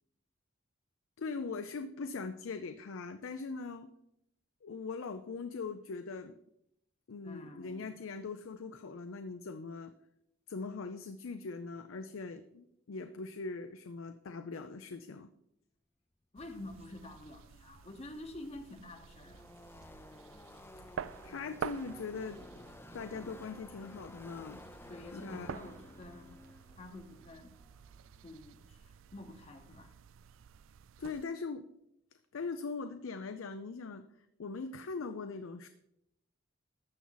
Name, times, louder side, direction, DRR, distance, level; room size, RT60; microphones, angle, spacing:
voice 1, 1.2-3.9 4.6-6.4 7.1-9.9 10.5-15.3 21.2-22.4 22.9-24.6 25.1-25.5 31.0-31.6 32.3-34.1 34.4-35.7, left 4 dB, 75° left, 0.5 m, -41 dB
voice 2, 7.2-7.9 16.3-19.6 23.2-23.4 24.9-26.4 26.8-27.6 28.2-29.9, left 1 dB, 30° left, 0.9 m, -48 dB
sound 1, 16.4-31.2, right 7 dB, 65° right, 0.3 m, -49 dB
sound 2, 16.7-25.0, right 1 dB, 30° right, 0.8 m, -67 dB
Car passing by / Race car auto racing, 18.2-28.5, left 1 dB, 10° left, 0.4 m, -54 dB
12.5 x 7.1 x 3.9 m
head